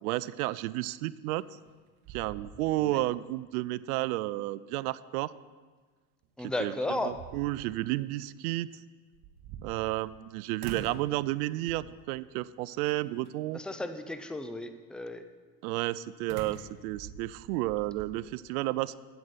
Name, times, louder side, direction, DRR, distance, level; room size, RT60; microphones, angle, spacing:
voice 1, 0.0-1.4 2.1-5.3 6.4-8.7 9.6-13.6 15.6-19.0, right 17 dB, 75° right, 18 dB, 0.5 m, -32 dB
sound 1, 1.4-1.8 2.0-3.1 3.4-3.5 6.2-6.3 6.9-7.8 9.1-10.2 10.6-11.1 11.7-12.0 12.8-13.3 16.3-18.1, right 7 dB, 60° right, 1.1 m, -45 dB
voice 2, 6.4-7.2 13.5-15.2, left 2 dB, ahead, 9 dB, 0.3 m, -34 dB
8.8 x 8.2 x 5.7 m, 1.4 s
supercardioid pair, 100°, 45 cm